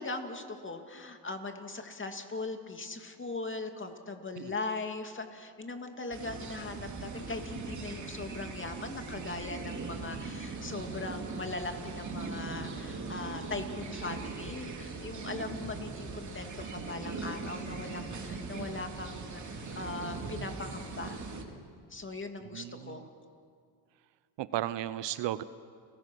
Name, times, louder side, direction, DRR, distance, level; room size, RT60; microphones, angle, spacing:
voice 1, 0.0-21.2 21.9-23.1, left 3 dB, 25° left, 5 dB, 2.5 m, -40 dB
sound 1, 6.1-21.4, right 4 dB, 35° right, 3.1 m, -40 dB
voice 2, 22.5-23.0 24.4-25.4, right 13 dB, 60° right, 15 dB, 0.8 m, -34 dB
29.5 x 16.5 x 6.2 m, 2.2 s
supercardioid pair, 80°, 49 cm